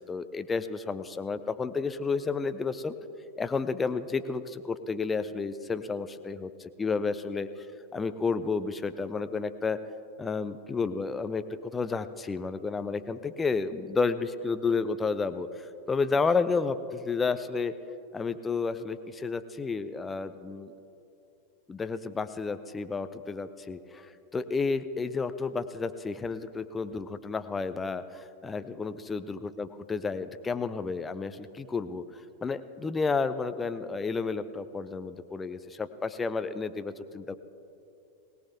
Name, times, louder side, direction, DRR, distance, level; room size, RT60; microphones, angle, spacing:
voice 1, 0.1-2.9 3.4-7.7 7.9-9.8 10.2-17.7 18.1-20.7 21.7-37.3, left 4 dB, 15° left, 11 dB, 0.6 m, -31 dB
21.5 x 17.5 x 2.8 m, 2.8 s
figure-of-eight pair, 90°, 0 cm